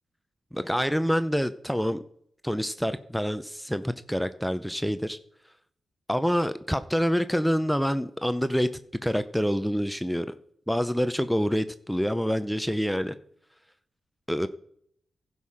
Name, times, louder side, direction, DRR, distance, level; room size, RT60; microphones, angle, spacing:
voice 1, 0.5-2.0 2.4-5.2 6.1-8.7 9.0-10.3 10.7-13.1 14.3-14.5, equal, ahead, 12 dB, 0.5 m, -26 dB
15.5 x 5.6 x 4.9 m, 0.66 s
cardioid pair, 95°, 0 cm